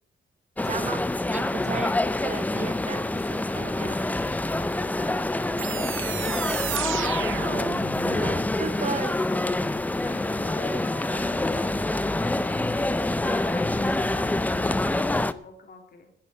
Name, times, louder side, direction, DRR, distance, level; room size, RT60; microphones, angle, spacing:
sound 1, 0.6-15.3, left 2 dB, 10° left, 0.5 m, -26 dB
voice 1, 0.6-1.0 1.3-4.0 6.3-6.4 8.6-9.2, right 5 dB, 35° right, 9 dB, 1.4 m, -34 dB
voice 2, 4.9-5.3 8.6-9.1 10.0-12.6 13.0-16.1, left 4 dB, 55° left, 4 dB, 2.9 m, -44 dB
sound 2, 5.6-8.4, right 13 dB, 85° right, 0.4 m, -33 dB
9.8 x 9.6 x 8.4 m, 0.64 s
wide cardioid pair, 140°, 20 cm